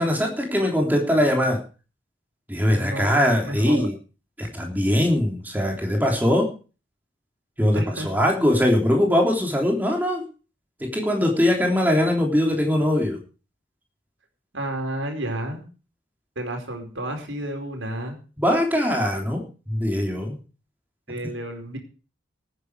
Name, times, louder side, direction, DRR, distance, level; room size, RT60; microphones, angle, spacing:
voice 1, 0.0-1.6 2.5-3.9 4.4-6.5 7.6-10.2 10.8-13.2 18.4-20.4, left 1 dB, 10° right, 1 dB, 3.4 m, -21 dB
voice 2, 2.7-3.9 7.7-8.1 14.5-15.6 16.3-18.2 21.1-21.8, right 1 dB, 70° right, 4 dB, 4.7 m, -31 dB
18.5 x 9.7 x 4.9 m, 0.36 s
head